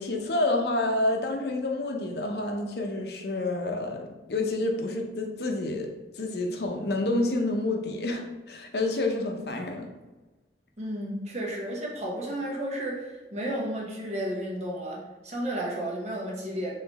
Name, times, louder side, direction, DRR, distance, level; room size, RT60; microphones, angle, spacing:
voice 1, 0.0-5.9 6.2-8.2 8.5-9.9, left 2 dB, 60° left, 2 dB, 0.7 m, -28 dB
voice 2, 10.8-15.0 15.2-16.7, right 1 dB, 40° right, -2 dB, 1.0 m, -32 dB
3.9 x 3.3 x 4.0 m, 1.2 s
head